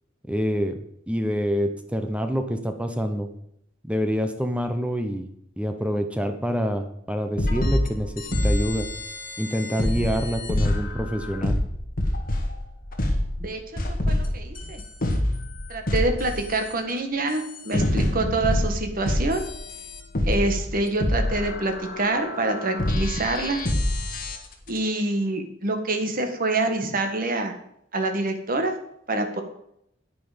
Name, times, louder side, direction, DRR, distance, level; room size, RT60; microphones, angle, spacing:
voice 1, 0.3-0.8 1.1-3.3 3.8-5.3 5.6-8.9 9.4-11.6, equal, 5° right, 6 dB, 0.8 m, -26 dB
sound 1, 7.4-13.5 13.8-16.7 17.3-24.8, left 1 dB, 50° left, 1.8 m, -26 dB
voice 2, 13.4-14.8 15.7-19.4 20.2-23.6 24.7-27.5 27.9-28.7 29.1-29.4, right 2 dB, 50° right, 5 dB, 1.6 m, -26 dB
9.6 x 9.4 x 5.2 m, 0.74 s
head